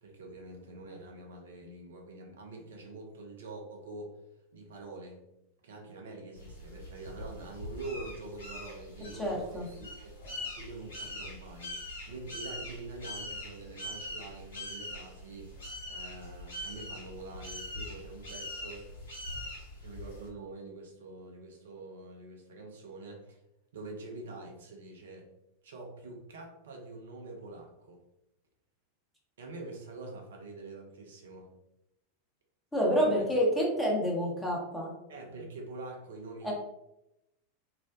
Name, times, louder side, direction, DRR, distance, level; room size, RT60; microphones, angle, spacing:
voice 1, 0.0-4.2 4.5-5.2 5.6-10.2 10.5-11.8 12.1-15.6 15.9-18.9 19.8-23.4 23.7-25.3 25.6-28.0 29.4-31.5 32.9-33.3 35.1-36.5, right 2 dB, 70° right, 1 dB, 0.5 m, -45 dB
sound 1, 6.3-20.3, left 1 dB, 70° left, 0.8 m, -43 dB
voice 2, 9.2-9.7 32.7-34.9 36.4-36.5, equal, 5° left, -4 dB, 0.8 m, -28 dB
2.4 x 2.1 x 2.5 m, 0.87 s
figure-of-eight pair, 90°, 0 cm